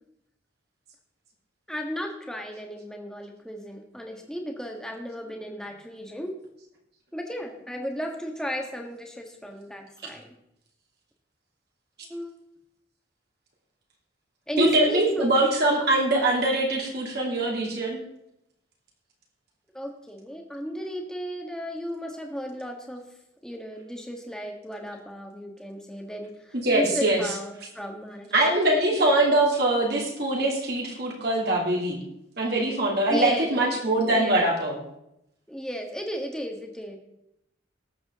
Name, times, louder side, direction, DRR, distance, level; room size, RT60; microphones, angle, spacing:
voice 1, 1.7-6.3 7.1-10.3 12.1-12.3 14.5-15.3 19.7-23.1 23.4-29.2 33.1-33.6 34.1-34.5 35.5-37.0, equal, 5° left, 2 dB, 1.5 m, -34 dB
voice 2, 14.6-18.0 26.6-27.2 28.3-32.0 32.4-34.8, right 2 dB, 55° right, -1 dB, 2.9 m, -23 dB
19.0 x 7.7 x 3.7 m, 0.82 s
head